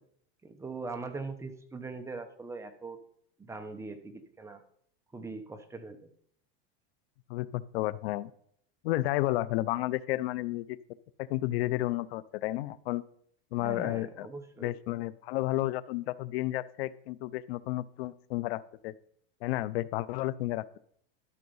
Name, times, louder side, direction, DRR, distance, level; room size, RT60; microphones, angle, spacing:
voice 1, 0.4-3.0 3.4-4.6 5.1-6.1 13.6-14.7, right 3 dB, 10° right, 7 dB, 0.9 m, -41 dB
voice 2, 7.3-8.3 8.8-10.8 11.3-13.0 13.5-14.3 14.6-18.9 19.4-20.8, left 16 dB, 90° left, 18 dB, 0.6 m, -32 dB
12.5 x 6.4 x 5.5 m, 0.64 s
supercardioid pair, 150°, 30 cm